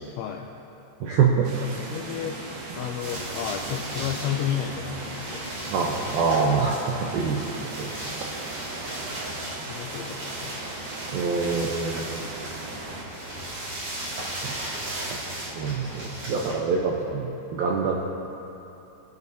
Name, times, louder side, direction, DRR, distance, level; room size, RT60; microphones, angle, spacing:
voice 1, 0.2-0.5 1.9-2.4 2.8-5.4 7.9-8.2 9.7-10.6, left 9 dB, 90° left, 0 dB, 3.0 m, -32 dB
voice 2, 1.0-1.5 5.7-6.8 7.1-7.4 7.8-7.9 11.1-12.3 15.4-18.0, right 5 dB, 80° right, -2 dB, 2.1 m, -25 dB
sound 1, 1.4-13.0, right 2 dB, 65° right, 2.8 m, -38 dB
sound 2, 3.0-16.6, right 1 dB, 45° right, 2.2 m, -36 dB
24.0 x 8.3 x 2.7 m, 2.9 s
omnidirectional pair, 5.2 m